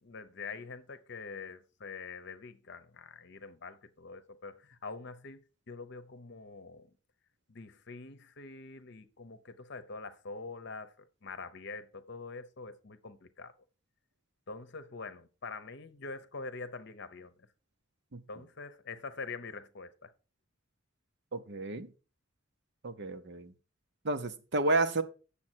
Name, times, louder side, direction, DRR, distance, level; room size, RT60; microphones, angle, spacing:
voice 1, 0.0-5.4 5.7-6.9 7.5-10.9 11.2-13.5 14.5-17.3 18.3-20.1, left 4 dB, 55° left, 0.9 m, -45 dB
voice 2, 21.3-21.9 22.8-23.5 24.0-25.0, right 2 dB, 55° right, 0.8 m, -31 dB
8.6 x 7.1 x 4.5 m
head